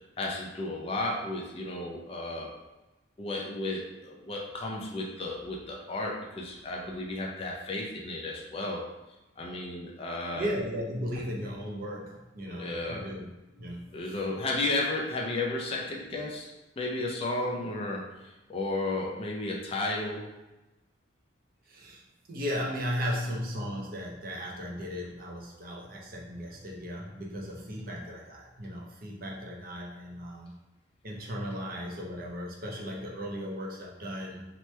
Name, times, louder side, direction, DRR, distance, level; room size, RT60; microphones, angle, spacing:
voice 1, 0.2-2.5 3.2-8.9 9.4-10.5 12.5-13.1 13.9-20.3, left 2 dB, 30° left, -1 dB, 0.4 m, -33 dB
voice 2, 10.3-14.2 21.7-22.0 22.3-30.5 31.0-34.5, equal, 45° right, -2 dB, 0.5 m, -36 dB
2.9 x 2.2 x 3.1 m, 1.0 s
head